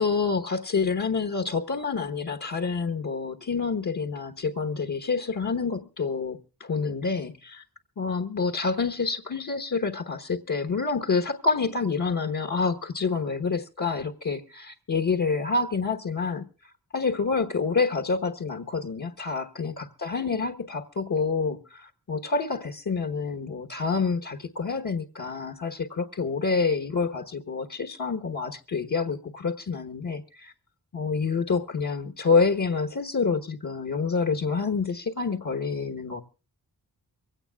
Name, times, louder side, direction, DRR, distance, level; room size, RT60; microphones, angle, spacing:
voice 1, 0.0-7.6 8.0-30.5 30.9-36.2, left 4 dB, 55° left, 1.2 m, -28 dB
24.0 x 17.0 x 2.3 m
wide cardioid pair, 85°, 36 cm